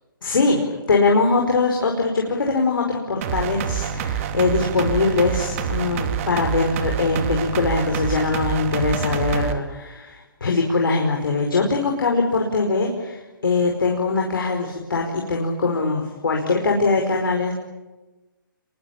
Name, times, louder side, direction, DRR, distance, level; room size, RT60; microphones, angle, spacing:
voice 1, 0.2-0.6 0.9-17.5, left 3 dB, 75° left, 1 dB, 5.1 m, -22 dB
sound 1, 3.2-9.5, right 8 dB, 40° right, 2.5 m, -27 dB
28.0 x 23.0 x 8.7 m, 1.1 s
hypercardioid pair, 140°, 12 cm